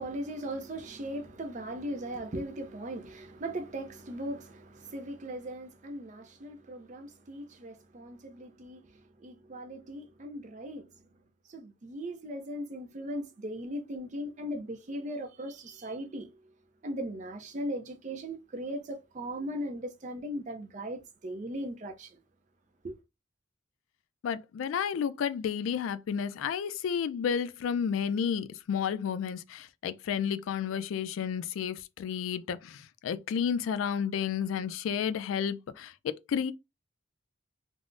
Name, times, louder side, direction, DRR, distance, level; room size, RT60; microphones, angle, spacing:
voice 1, 0.0-11.1 11.5-16.4 16.8-22.2 22.8-22.9, right 1 dB, 35° right, 0.4 m, -38 dB
voice 2, 24.2-36.5, left 7 dB, 80° left, 0.3 m, -31 dB
3.5 x 2.0 x 2.5 m
head